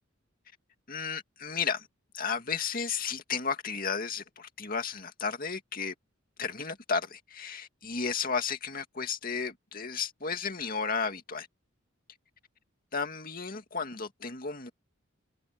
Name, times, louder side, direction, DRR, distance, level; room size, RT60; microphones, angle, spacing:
voice 1, 0.9-1.9 2.1-5.9 6.4-11.5 12.9-14.7, left 5 dB, 45° left, 2.3 m, -33 dB
head